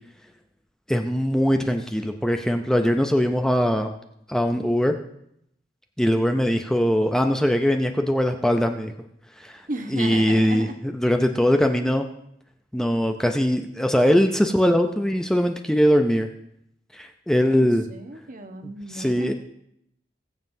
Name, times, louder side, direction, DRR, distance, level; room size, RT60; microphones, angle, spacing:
voice 1, 0.9-3.9 4.3-5.0 6.0-8.9 9.4-9.6 9.9-12.1 12.7-16.3 16.9-17.8 18.9-19.3, equal, 5° left, 5 dB, 0.5 m, -21 dB
voice 2, 9.7-10.8 17.5-19.3, right 2 dB, 50° right, 6 dB, 1.1 m, -34 dB
21.0 x 7.3 x 2.7 m, 0.75 s
head